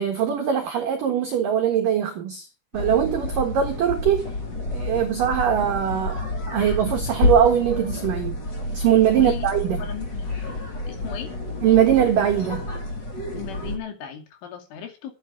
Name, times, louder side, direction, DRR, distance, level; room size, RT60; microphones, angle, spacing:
voice 1, 0.0-2.5 2.7-4.3 4.7-8.4 8.7-9.8 11.6-12.7, right 9 dB, 65° right, 2.2 m, -21 dB
sound 1, 2.7-13.8, left 2 dB, 30° left, 2.4 m, -29 dB
voice 2, 9.1-10.6 10.9-11.3 13.3-15.1, left 9 dB, 70° left, 4.9 m, -37 dB
12.5 x 9.1 x 5.8 m
omnidirectional pair, 5.9 m